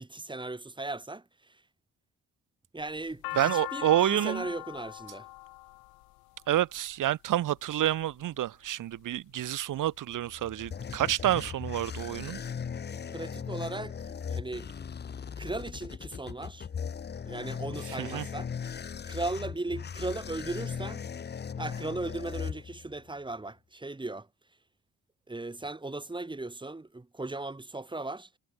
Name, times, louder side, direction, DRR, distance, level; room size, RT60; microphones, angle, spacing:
voice 1, 0.0-1.6 2.7-5.3 13.1-14.7 15.4-16.7 17.2-18.5 19.0-21.0 21.6-24.3 25.3-28.3, right 2 dB, 15° right, 1.6 m, -37 dB
sound 1, 2.8-7.0 7.9-8.3 8.9-9.6 9.9-10.0 10.2-11.0, left 22 dB, 90° left, 3.6 m, -40 dB
voice 2, 3.4-4.4 6.5-12.4 18.0-18.2, right 13 dB, 65° right, 1.2 m, -28 dB
sound 2, 10.1-23.1, left 7 dB, 30° left, 0.8 m, -38 dB
supercardioid pair, 65°, 35 cm